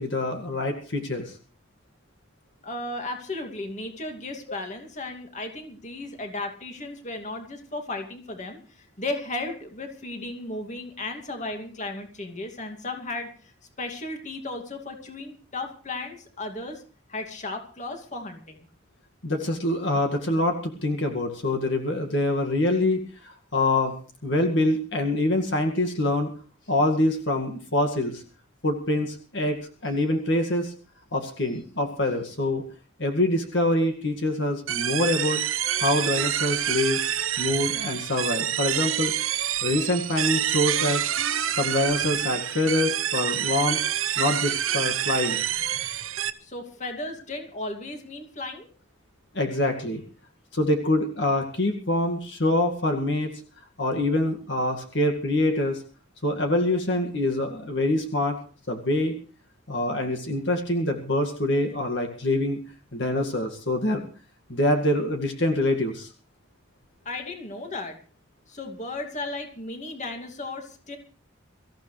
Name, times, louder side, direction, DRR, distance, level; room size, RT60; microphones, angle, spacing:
voice 1, 0.0-1.3 19.2-23.9 24.2-26.3 26.7-28.2 28.6-30.7 31.1-32.6 33.0-35.4 35.8-37.0 37.4-39.1 39.6-41.0 41.5-43.8 44.2-45.4 49.3-50.0 50.5-53.3 53.8-55.8 56.2-58.4 58.7-59.2 59.7-62.6 62.9-64.0 64.5-66.1, left 1 dB, 55° left, 3 dB, 2.1 m, -25 dB
voice 2, 2.6-13.5 13.8-16.8 17.1-18.7 46.4-48.7 67.0-68.0 68.5-71.0, left 2 dB, 35° left, 4 dB, 2.5 m, -35 dB
sound 1, 34.7-46.3, right 10 dB, 80° right, 0.9 m, -27 dB
24.5 x 15.0 x 3.3 m, 0.40 s
head